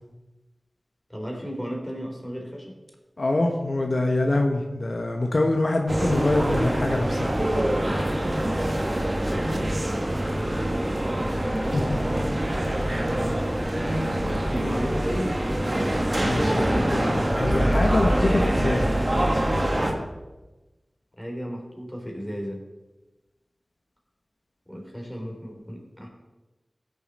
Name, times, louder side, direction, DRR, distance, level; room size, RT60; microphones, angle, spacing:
voice 1, 1.1-2.7 10.3-10.9 12.9-13.5 14.2-15.4 21.2-22.6 24.7-26.1, equal, 5° left, -1 dB, 3.5 m, -34 dB
voice 2, 3.2-7.3 11.3-12.0 15.7-18.9, left 2 dB, 70° left, 3 dB, 1.1 m, -25 dB
sound 1, 5.9-19.9, right 1 dB, 35° right, 1.6 m, -24 dB
15.5 x 6.7 x 4.3 m, 1.1 s
wide cardioid pair, 45°, 0 cm